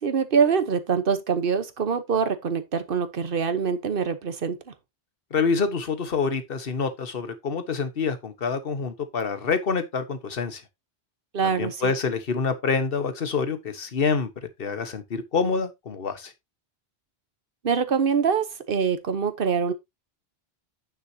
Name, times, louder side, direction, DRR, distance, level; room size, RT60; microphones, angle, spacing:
voice 1, 0.0-4.7 11.3-11.9 17.6-19.7, right 6 dB, 55° right, 1.2 m, -24 dB
voice 2, 5.3-10.6 11.4-14.3 14.6-16.3, left 5 dB, 60° left, 1.4 m, -27 dB
9.4 x 6.5 x 2.8 m
omnidirectional pair, 1.1 m